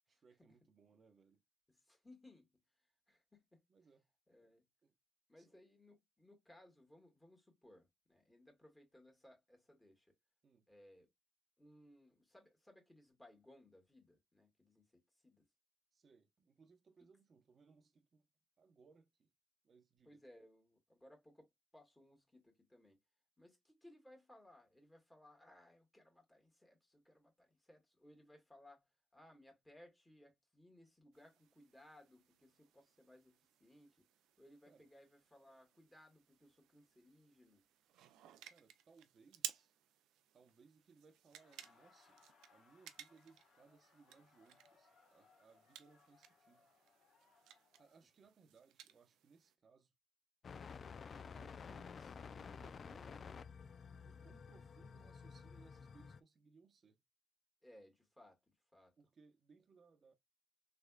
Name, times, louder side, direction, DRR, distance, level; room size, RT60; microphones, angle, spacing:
voice 1, 0.2-1.4 3.7-4.1 4.4-4.5 4.8-4.9 5.4-5.6 10.4-10.7 15.9-18.2 18.6-19.3 19.6-20.2 34.7-34.9 38.5-39.7 40.3-46.7 47.8-49.9 51.3-53.3 53.9-57.0 59.0-60.1, right 5 dB, 45° right, 0.8 m, -67 dB
voice 2, 1.7-2.5 3.1-3.6 4.3-4.7 5.3-10.2 10.7-11.1 11.6-15.5 20.1-23.0 23.4-34.1 34.4-37.6 57.6-58.9, left 1 dB, 10° left, 1.6 m, -64 dB
sound 1, 31.1-49.5, right 11 dB, 90° right, 0.5 m, -56 dB
Laughter, 41.2-48.0, left 4 dB, 75° left, 1.4 m, -71 dB
sound 2, 50.4-56.2, left 6 dB, 45° left, 0.3 m, -52 dB
3.6 x 3.3 x 2.2 m
cardioid pair, 90°, 0 cm